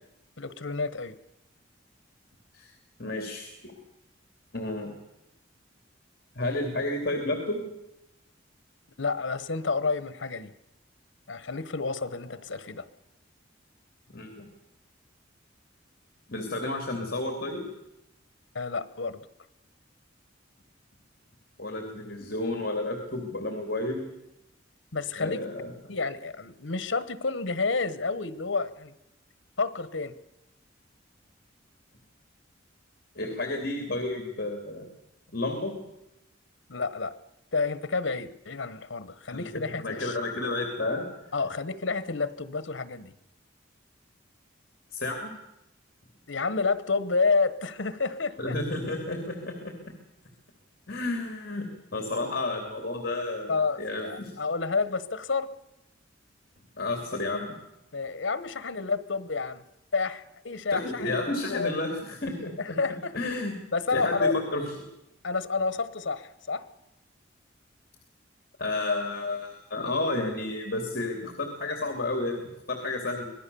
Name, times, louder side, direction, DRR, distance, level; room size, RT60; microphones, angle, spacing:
voice 1, 0.4-1.2 9.0-10.5 11.3-12.9 18.5-19.2 24.9-25.4 25.9-28.9 29.6-30.1 36.7-37.1 37.5-40.2 41.3-43.1 46.3-48.6 53.5-55.5 57.9-59.6 59.9-61.2 61.5-61.7 62.6-63.1 63.7-64.4 65.2-66.6, left 4 dB, 80° left, 15 dB, 1.2 m, -29 dB
voice 2, 3.0-3.8 4.5-4.9 6.3-7.6 14.1-14.5 16.3-17.7 21.6-24.1 25.2-25.7 33.1-34.8 35.3-35.8 39.3-41.1 44.9-45.4 48.4-49.9 50.9-53.5 53.8-54.3 56.8-57.6 60.7-63.6 63.9-64.6 68.6-73.3, left 2 dB, 55° left, 4 dB, 2.9 m, -31 dB
25.5 x 18.5 x 7.0 m, 0.91 s
head